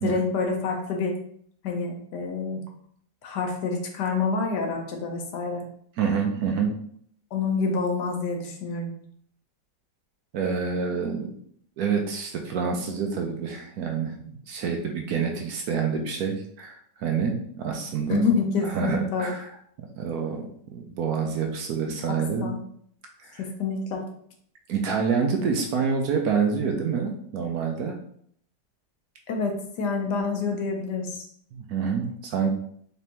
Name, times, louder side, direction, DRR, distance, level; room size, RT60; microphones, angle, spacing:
voice 1, 0.0-1.2 1.6-2.6 3.2-5.6 7.3-8.9 18.1-19.3 22.1-22.6 23.4-24.0 29.3-31.3, left 4 dB, 75° left, 3 dB, 1.3 m, -27 dB
voice 2, 6.0-6.7 10.3-11.3 11.8-18.3 18.7-19.4 19.8-22.5 23.2-23.4 24.7-28.0 31.5-32.5, right 6 dB, 70° right, 2 dB, 1.0 m, -27 dB
4.0 x 3.4 x 2.8 m, 0.64 s
omnidirectional pair, 1.9 m